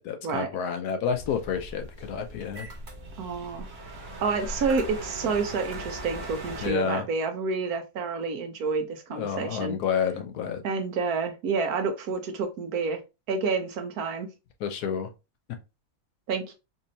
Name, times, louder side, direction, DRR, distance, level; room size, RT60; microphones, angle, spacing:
voice 1, 0.0-2.7 6.6-7.1 9.1-10.6 14.6-15.1, left 7 dB, 80° left, 1.2 m, -29 dB
sound 1, 1.1-6.7, right 1 dB, 50° right, 1.3 m, -39 dB
voice 2, 3.2-3.7 4.2-9.8 10.6-13.0 13.3-14.3 16.3-16.5, right 4 dB, 75° right, 1.3 m, -29 dB
4.1 x 2.7 x 2.7 m
omnidirectional pair, 1.6 m